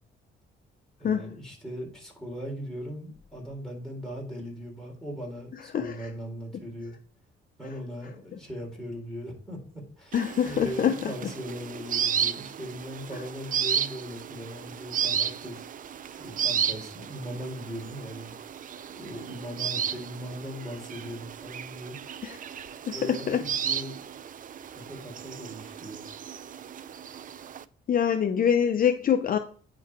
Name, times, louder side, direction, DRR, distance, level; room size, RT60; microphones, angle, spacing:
voice 1, 1.0-7.0 7.6-15.6 16.2-18.3 18.9-22.0 22.9-24.1 24.7-26.1, equal, 5° left, 3.6 m, -39 dB
voice 2, 10.1-11.0 22.2-22.4 22.9-23.4 27.9-29.4, left 8 dB, 45° left, 0.6 m, -24 dB
sound 1, 10.1-27.6, right 8 dB, 45° right, 0.5 m, -34 dB
9.2 x 3.9 x 4.7 m
cardioid pair, 90°, 20 cm